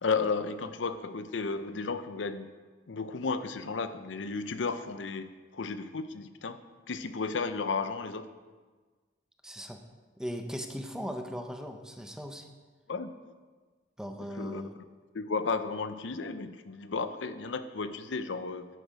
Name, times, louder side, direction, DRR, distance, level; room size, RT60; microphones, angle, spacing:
voice 1, 0.0-2.5 2.9-6.6 6.9-8.3 12.9-13.1 14.4-14.6 15.1-18.7, left 4 dB, 80° left, 11 dB, 0.6 m, -33 dB
voice 2, 9.4-9.8 10.2-12.5 14.0-14.7, equal, 5° right, 5 dB, 0.8 m, -38 dB
11.0 x 9.2 x 5.1 m, 1.4 s
head